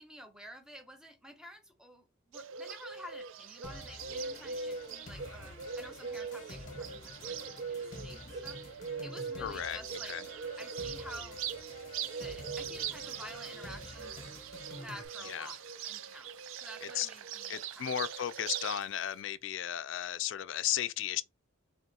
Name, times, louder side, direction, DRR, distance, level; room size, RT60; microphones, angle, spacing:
voice 1, 0.0-10.1 10.6-11.4 12.2-14.3 14.8-16.3 16.6-17.8, equal, 5° right, 0.6 m, -50 dB
Bird, 2.3-18.8, right 6 dB, 70° right, 0.4 m, -41 dB
sound 1, 3.6-15.1, left 2 dB, 35° left, 0.8 m, -49 dB
voice 2, 9.4-9.8 10.0-10.2 15.2-15.5 16.8-17.1 17.5-21.2, left 11 dB, 65° left, 0.3 m, -35 dB
Meow, 11.3-19.2, right 4 dB, 85° right, 2.3 m, -62 dB
3.5 x 2.3 x 4.0 m
head